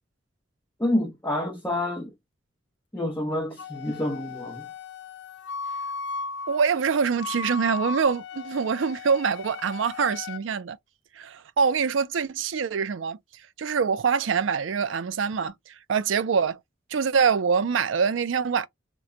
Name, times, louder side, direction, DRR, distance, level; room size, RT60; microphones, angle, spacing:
voice 1, 0.8-2.1 2.9-4.7, left 1 dB, 10° left, 0.7 m, -28 dB
Wind instrument woodwind instrument, 3.6-10.4, left 4 dB, 60° left, 0.4 m, -36 dB
voice 2, 6.5-10.8 11.1-13.2 13.6-16.6 16.9-18.7, right 6 dB, 80° right, 0.4 m, -25 dB
3.0 x 2.1 x 3.7 m
head